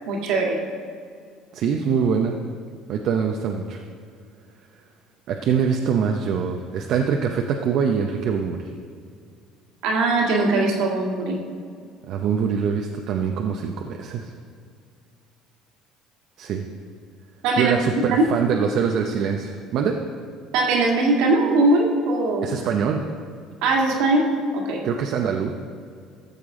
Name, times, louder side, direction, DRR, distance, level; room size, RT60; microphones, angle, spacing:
voice 1, 0.1-0.6 9.8-11.4 17.4-17.8 18.1-18.2 20.5-22.5 23.6-24.8, right 2 dB, 80° right, 0 dB, 1.8 m, -20 dB
voice 2, 1.5-2.3 2.9-3.8 5.3-8.7 12.1-14.3 16.4-16.7 17.6-20.0 22.4-23.0 24.8-25.5, right 7 dB, 60° right, 2 dB, 0.7 m, -24 dB
14.0 x 6.8 x 3.8 m, 2.2 s
supercardioid pair, 100°, 0 cm